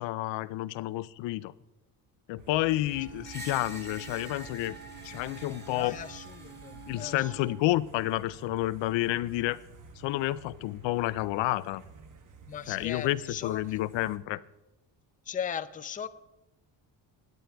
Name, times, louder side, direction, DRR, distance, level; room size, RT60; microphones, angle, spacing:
voice 1, 0.0-1.5 2.3-4.8 5.0-6.0 6.9-9.6 10.0-11.8 12.7-14.4, left 16 dB, 80° left, 0.6 m, -30 dB
sound 1, 2.4-14.2, right 4 dB, 45° right, 1.2 m, -51 dB
Wind instrument woodwind instrument, 2.9-7.7, right 6 dB, 65° right, 1.4 m, -49 dB
Screech, 3.2-7.2, right 1 dB, 20° right, 2.2 m, -47 dB
voice 2, 5.7-7.5 12.5-13.8 15.3-16.1, left 8 dB, 20° left, 0.4 m, -38 dB
19.0 x 9.1 x 3.4 m
cardioid pair, 125°, 44 cm